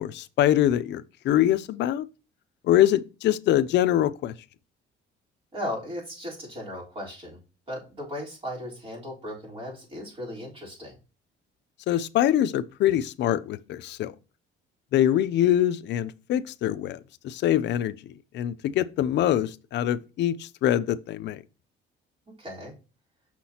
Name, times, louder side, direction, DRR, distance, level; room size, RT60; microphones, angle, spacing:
voice 1, 0.0-2.0 2.6-4.3 11.9-14.1 14.9-17.9 18.3-21.4, left 12 dB, 60° left, 0.5 m, -24 dB
voice 2, 5.5-7.4 7.7-10.9 22.4-22.7, left 1 dB, 30° right, 3.8 m, -36 dB
6.3 x 5.9 x 2.8 m
cardioid pair, 145°, 20 cm